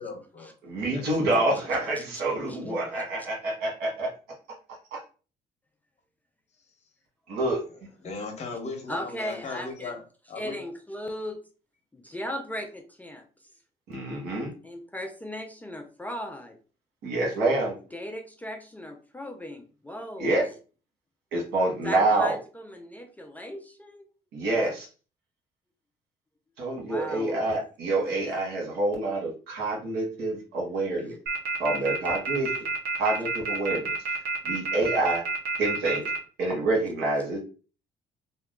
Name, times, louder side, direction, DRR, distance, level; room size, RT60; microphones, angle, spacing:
voice 1, 0.0-0.5 0.9-1.4 2.5-2.8 8.0-10.0 10.3-10.6, left 4 dB, 40° left, 3 dB, 1.0 m, -37 dB
voice 2, 0.6-4.1 4.9-5.0 7.3-7.6 13.9-14.5 17.0-17.7 20.2-20.4 21.3-22.4 24.3-24.9 26.6-31.1 31.6-32.5 33.0-33.9 34.4-35.2 35.6-36.0 36.4-37.4, right 2 dB, 85° right, -1 dB, 1.4 m, -27 dB
voice 3, 8.9-10.0 10.4-11.4 11.9-13.3 14.6-16.6 17.9-20.4 21.8-24.1 26.9-27.4, equal, 10° left, 4 dB, 0.4 m, -37 dB
sound 1, 31.3-36.2, right 4 dB, 65° right, 0.9 m, -29 dB
2.9 x 2.2 x 3.5 m, 0.36 s
cardioid pair, 110°, 17 cm